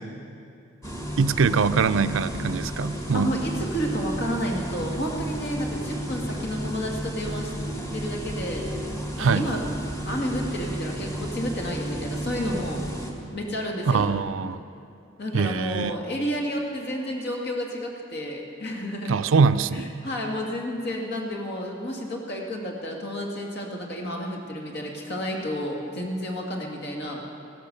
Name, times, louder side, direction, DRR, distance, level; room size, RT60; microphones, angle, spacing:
sound 1, 0.8-13.1, right 1 dB, 15° left, 1.6 m, -32 dB
voice 1, 1.2-3.4 9.2-9.5 13.9-14.6 15.3-15.9 19.1-19.9, right 5 dB, 80° right, 13 dB, 0.5 m, -23 dB
voice 2, 3.1-7.5 7.9-8.8 9.2-9.6 10.0-12.8 13.3-14.1 15.2-19.2 19.7-27.3, equal, 55° left, 0 dB, 2.2 m, -31 dB
16.0 x 12.0 x 6.8 m, 2.7 s
head